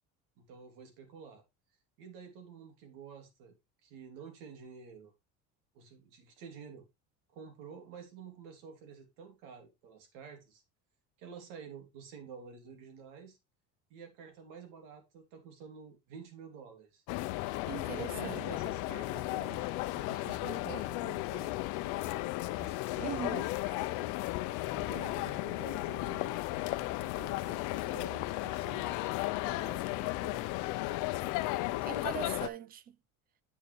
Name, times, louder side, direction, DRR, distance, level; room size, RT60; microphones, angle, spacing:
voice 1, 0.4-1.4 2.0-3.6 3.8-5.1 5.7-6.9 7.3-10.6 11.2-13.4 13.9-17.0 17.8-21.6 22.6-24.0 24.4-26.4 27.0-29.0 29.4-30.5, right 6 dB, 85° right, 2.9 m, -50 dB
sound 1, 17.1-32.5, left 18 dB, 70° left, 0.7 m, -35 dB
voice 2, 17.7-18.5 23.0-23.5 31.8-33.0, right 9 dB, 30° right, 0.4 m, -40 dB
8.2 x 6.9 x 3.2 m
cardioid pair, 165°, 31 cm